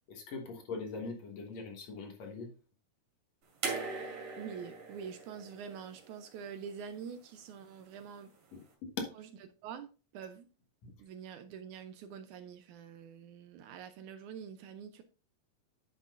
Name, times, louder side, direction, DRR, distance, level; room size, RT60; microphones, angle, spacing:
voice 1, 0.1-2.5 8.5-9.1 10.8-10.9, left 4 dB, 60° left, 2.4 m, -41 dB
sound 1, 3.6-6.8 8.0-8.1, right 4 dB, 55° right, 3.4 m, -41 dB
voice 2, 3.9-8.3 9.6-10.5 11.0-15.0, right 7 dB, 75° right, 1.9 m, -46 dB
9.7 x 7.3 x 2.5 m
omnidirectional pair, 3.8 m